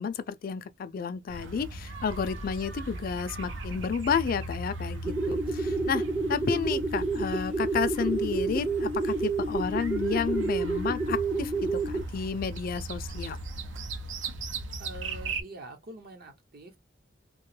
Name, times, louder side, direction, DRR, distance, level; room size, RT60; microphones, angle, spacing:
voice 1, 0.0-13.4, left 6 dB, 50° left, 0.3 m, -31 dB
sound 1, 1.3-15.4, right 2 dB, 75° right, 0.6 m, -38 dB
sound 2, 5.0-12.0, right 3 dB, 10° right, 0.4 m, -29 dB
voice 2, 14.8-16.8, right 2 dB, 55° right, 0.8 m, -45 dB
2.9 x 2.2 x 3.1 m
head